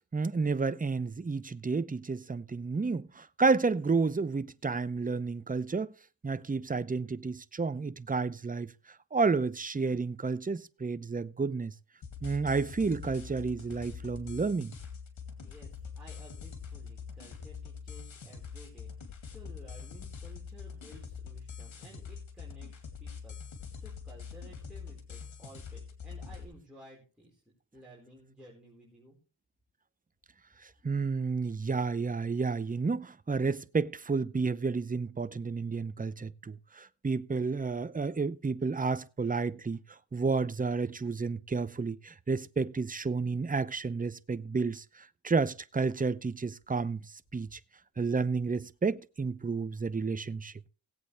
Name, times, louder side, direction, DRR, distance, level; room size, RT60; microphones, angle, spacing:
voice 1, 0.1-5.9 6.2-8.7 9.1-11.7 12.2-14.8 30.6-47.0 47.3-47.6 48.0-50.5, right 4 dB, 20° right, 0.6 m, -31 dB
sound 1, 12.0-26.4, left 6 dB, 75° left, 2.3 m, -44 dB
voice 2, 15.4-22.7 23.0-27.4 27.7-29.2, equal, ahead, 4.4 m, -55 dB
18.0 x 8.2 x 3.3 m
cardioid pair, 80°, 47 cm